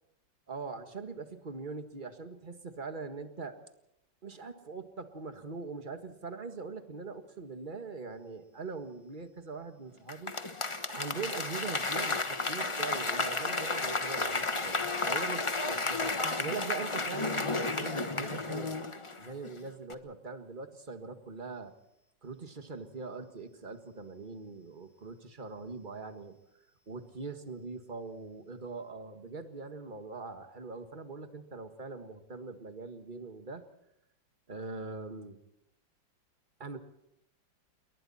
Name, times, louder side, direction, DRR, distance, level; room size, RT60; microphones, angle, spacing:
voice 1, 0.5-3.6 4.2-10.4 10.9-18.8 19.2-21.7 22.2-26.4 26.9-33.6 34.5-35.4 36.6-36.8, right 4 dB, 25° right, 8 dB, 1.8 m, -42 dB
Applause / Crowd, 10.1-19.5 19.9-20.0, left 3 dB, 20° left, 1.0 m, -32 dB
29.0 x 22.0 x 4.3 m, 0.82 s
omnidirectional pair, 2.0 m